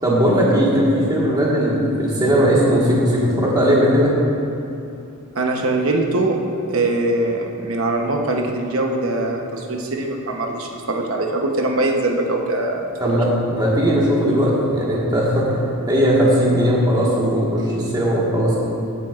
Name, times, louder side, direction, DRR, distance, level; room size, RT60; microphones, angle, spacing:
voice 1, 0.0-4.1 13.0-15.6 15.9-18.6, equal, 20° right, -6 dB, 1.6 m, -18 dB
voice 2, 5.3-6.4 6.7-13.3, right 2 dB, 65° right, 1 dB, 1.0 m, -22 dB
15.0 x 7.5 x 2.5 m, 2.8 s
head